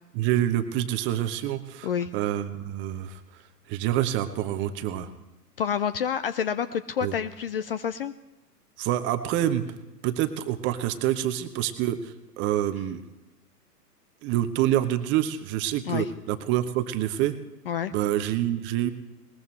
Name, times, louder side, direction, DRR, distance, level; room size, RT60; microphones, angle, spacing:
voice 1, 0.1-1.9 2.1-3.2 3.7-5.1 7.0-7.1 8.8-9.6 10.0-13.0 14.2-17.3 17.9-18.9, right 12 dB, 25° right, 10 dB, 1.0 m, -27 dB
voice 2, 5.6-8.1 15.9-16.1 17.7-17.9, left 8 dB, 40° left, 13 dB, 0.5 m, -28 dB
21.0 x 19.5 x 3.2 m, 1.0 s
figure-of-eight pair, 110°, 49 cm